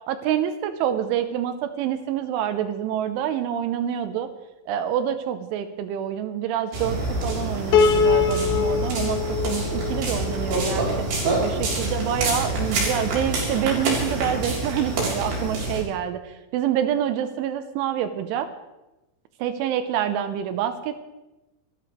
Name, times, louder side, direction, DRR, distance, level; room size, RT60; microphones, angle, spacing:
voice 1, 0.1-4.3 4.7-9.2 9.4-10.9 11.4-18.5 19.4-21.0, right 10 dB, 85° right, 9 dB, 3.2 m, -27 dB
sound 1, 6.7-15.8, right 2 dB, 55° right, 5.5 m, -26 dB
Piano, 7.7-11.0, left 5 dB, 85° left, 2.0 m, -23 dB
26.5 x 13.5 x 3.3 m, 0.99 s
omnidirectional pair, 5.7 m